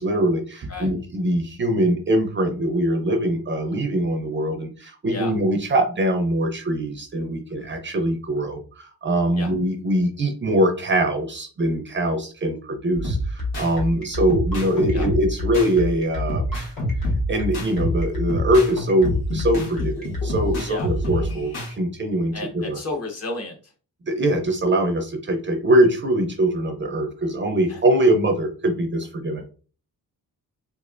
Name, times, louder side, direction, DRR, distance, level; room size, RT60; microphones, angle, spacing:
voice 1, 0.0-16.7 17.3-22.8 24.1-29.4, right 1 dB, 30° right, 4 dB, 0.5 m, -22 dB
sound 1, 13.0-13.7 14.3-15.7 16.3-18.7 19.0-21.7, equal, 85° left, 1.5 m, -27 dB
sound 2, 13.1-20.3, left 4 dB, 65° left, 1.6 m, -28 dB
voice 2, 22.3-23.5 27.7-27.8, left 2 dB, 40° left, 2 dB, 1.0 m, -32 dB
3.5 x 3.1 x 2.4 m, 0.37 s
wide cardioid pair, 155°, 37 cm